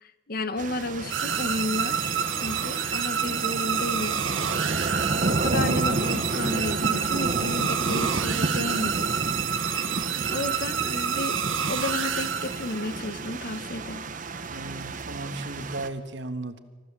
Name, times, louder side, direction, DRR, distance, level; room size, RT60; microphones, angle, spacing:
voice 1, 0.0-4.2 5.3-9.2 9.5-10.0 10.3-14.1, left 2 dB, 50° left, 12 dB, 1.1 m, -33 dB
sound 1, 0.6-15.9, right 2 dB, 40° right, 1.0 m, -31 dB
sound 2, 1.1-13.0, right 8 dB, 85° right, 1.5 m, -28 dB
voice 2, 14.5-16.6, right 2 dB, 60° right, 8 dB, 1.4 m, -36 dB
26.5 x 15.0 x 7.4 m, 1.4 s
head